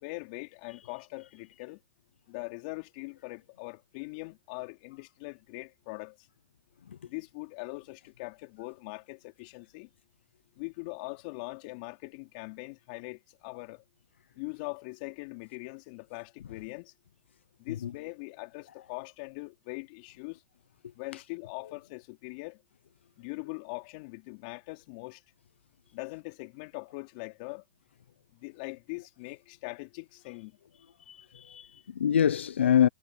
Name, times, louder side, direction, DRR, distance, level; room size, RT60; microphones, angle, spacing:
voice 1, 0.0-1.8 2.3-6.3 7.0-9.9 10.6-13.8 14.4-16.9 17.6-20.4 21.0-22.6 23.2-25.2 25.9-27.6 28.3-30.6, left 28 dB, 40° left, 3.9 m, -41 dB
voice 2, 31.1-32.9, left 9 dB, 80° left, 0.8 m, -25 dB
hypercardioid pair, 140°, 6 cm